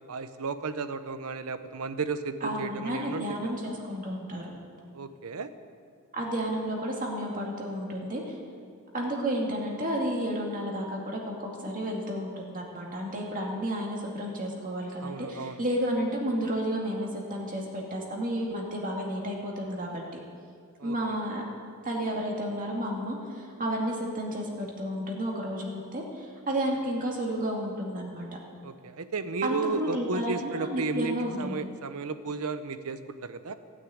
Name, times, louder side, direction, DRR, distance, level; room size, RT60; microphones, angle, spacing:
voice 1, 0.1-3.6 4.9-5.5 15.0-15.6 20.8-20.9 28.6-33.5, right 4 dB, 75° right, 11 dB, 0.7 m, -34 dB
voice 2, 2.4-4.5 6.1-8.4 8.9-20.0 20.8-21.4 21.8-28.3 29.4-31.5, equal, 40° right, -1 dB, 2.3 m, -31 dB
16.0 x 6.4 x 9.3 m, 2.3 s
head